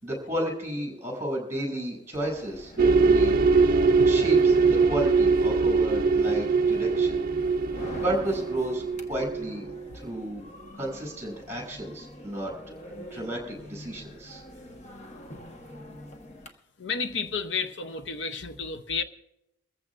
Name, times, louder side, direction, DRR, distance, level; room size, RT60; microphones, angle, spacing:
voice 1, 0.0-3.3 4.1-7.2 7.7-9.7 9.9-10.4 10.8-14.4, right 1 dB, 15° right, 6.3 m, -33 dB
sound 1, 2.1-16.5, equal, 35° left, 1.2 m, -45 dB
sound 2, 2.8-9.9, right 4 dB, 50° right, 0.6 m, -22 dB
voice 2, 16.8-19.0, left 5 dB, 65° left, 0.6 m, -31 dB
24.0 x 15.0 x 2.5 m
head